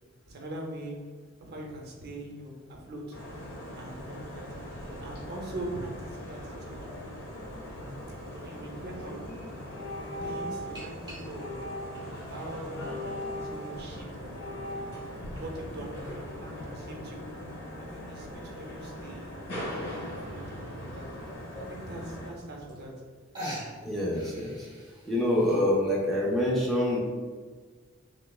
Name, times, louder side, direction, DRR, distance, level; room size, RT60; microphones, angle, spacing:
voice 1, 0.3-1.0 1.4-3.2 3.8-4.5 5.0-6.8 8.3-9.2 10.0-11.7 12.3-13.1 13.3-14.9 15.3-17.2 17.8-19.3 20.1-21.1 21.5-22.9, right 1 dB, 50° right, 0 dB, 0.6 m, -42 dB
sound 1, 3.1-22.3, equal, 80° left, 1.4 m, -41 dB
sound 2, 8.9-9.1 9.7-10.7 11.3-12.1 12.7-13.9 14.3-14.9, left 1 dB, 55° left, 0.6 m, -39 dB
sound 3, 10.7-11.6 12.3-13.3 14.0-14.1 15.2-16.3 17.9-18.0 18.5-18.6 18.8-18.9 19.3-19.6 20.6-20.7 21.2-21.3 22.4-22.5 22.7-23.1 23.3-25.6, equal, 20° right, 1.0 m, -43 dB
voice 2, 23.8-24.7 25.0-27.0, left 1 dB, ahead, -5 dB, 0.5 m, -26 dB
3.2 x 3.1 x 2.3 m, 1.5 s
head